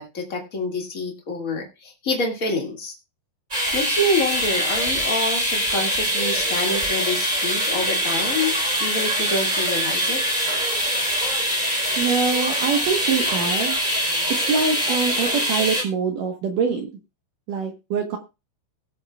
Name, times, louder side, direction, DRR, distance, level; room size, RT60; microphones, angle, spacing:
voice 1, 0.0-2.9 3.7-8.5 8.8-10.2, left 2 dB, 60° left, 0 dB, 0.8 m, -27 dB
sound 1, 3.5-15.8, equal, 10° right, 3.5 m, -23 dB
voice 2, 12.0-13.8 14.3-16.9 17.5-18.2, right 5 dB, 70° right, 3 dB, 2.1 m, -24 dB
20.5 x 8.4 x 2.4 m, 0.28 s
omnidirectional pair, 5.4 m